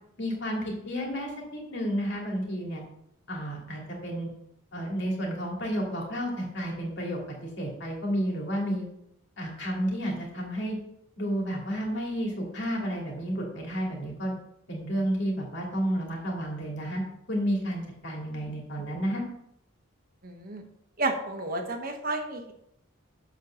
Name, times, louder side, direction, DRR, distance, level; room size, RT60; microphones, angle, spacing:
voice 1, 0.2-2.8 3.3-4.3 4.7-8.8 9.4-10.8 11.2-14.3 14.7-17.0 17.3-19.2, equal, 55° left, -1 dB, 2.5 m, -31 dB
voice 2, 20.2-20.7 21.0-22.5, right 2 dB, 45° right, 4 dB, 1.1 m, -31 dB
7.3 x 5.6 x 6.4 m, 0.77 s
head